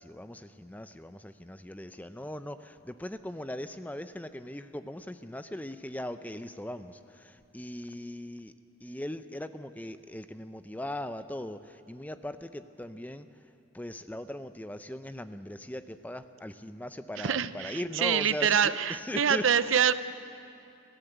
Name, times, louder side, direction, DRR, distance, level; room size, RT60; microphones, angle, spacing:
voice 1, 0.0-8.5 8.8-13.3 13.7-19.7, left 1 dB, 10° left, 11 dB, 0.5 m, -39 dB
voice 2, 17.2-19.9, right 7 dB, 75° right, 14 dB, 0.7 m, -26 dB
26.0 x 14.5 x 8.0 m, 2.7 s
head